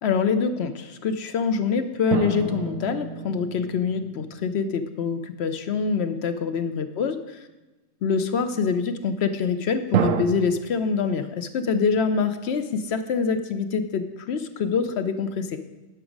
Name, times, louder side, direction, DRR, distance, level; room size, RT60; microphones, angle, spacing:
voice 1, 0.0-7.5 8.0-15.6, left 5 dB, 65° left, 9 dB, 0.7 m, -25 dB
sound 1, 2.1-5.0 9.9-10.3, right 7 dB, 85° right, 1.1 m, -28 dB
10.0 x 6.0 x 5.1 m, 1.1 s
omnidirectional pair, 1.4 m